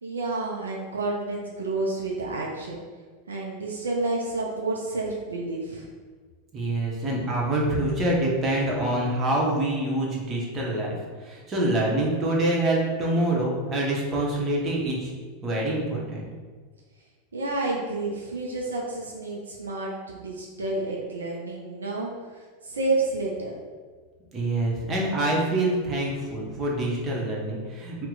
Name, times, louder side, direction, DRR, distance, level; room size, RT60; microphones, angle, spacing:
voice 1, 0.0-2.8 3.3-5.9 17.3-22.1 22.6-23.5, right 2 dB, 80° right, -2 dB, 0.4 m, -30 dB
voice 2, 6.5-11.0 11.2-15.1 15.4-16.3 24.3-28.1, right 1 dB, 30° right, -3 dB, 0.9 m, -26 dB
2.8 x 2.1 x 3.8 m, 1.5 s
hypercardioid pair, 90°, 0 cm